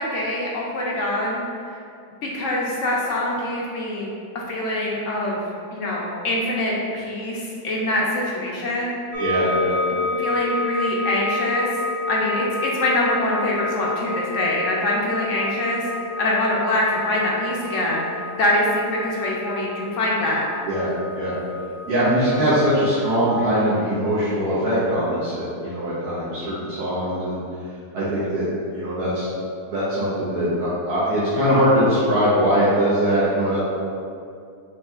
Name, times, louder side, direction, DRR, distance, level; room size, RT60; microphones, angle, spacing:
voice 1, 0.0-1.4 2.2-4.1 4.3-5.4 5.7-9.2 10.2-11.7 12.1-15.8 16.2-18.1 18.4-20.4, left 1 dB, 65° left, -3 dB, 0.9 m, -24 dB
sound 1, 9.1-23.4, left 2 dB, 60° right, 1.3 m, -30 dB
voice 2, 9.2-9.7 20.7-21.3 21.9-27.4 27.9-29.3 29.7-33.6, equal, 75° right, -11 dB, 1.5 m, -21 dB
5.9 x 2.8 x 2.3 m, 2.4 s
omnidirectional pair, 1.7 m